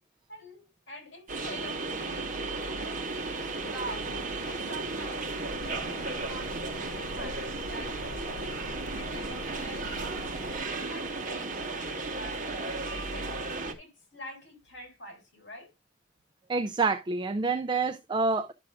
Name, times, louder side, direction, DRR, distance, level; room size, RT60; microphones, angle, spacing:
voice 1, 0.3-2.9 3.2-5.3 5.6-8.5 8.9-10.4 10.9-13.5 13.8-15.7, equal, 65° left, 3.4 m, -46 dB
sound 1, 1.3-13.7, right 3 dB, 40° right, 1.1 m, -34 dB
sound 2, 3.0-10.6, equal, 40° left, 4.5 m, -55 dB
sound 3, 5.5-10.7, left 2 dB, 80° left, 0.7 m, -44 dB
voice 2, 16.5-18.5, right 4 dB, 25° right, 0.4 m, -27 dB
11.5 x 6.1 x 2.4 m
head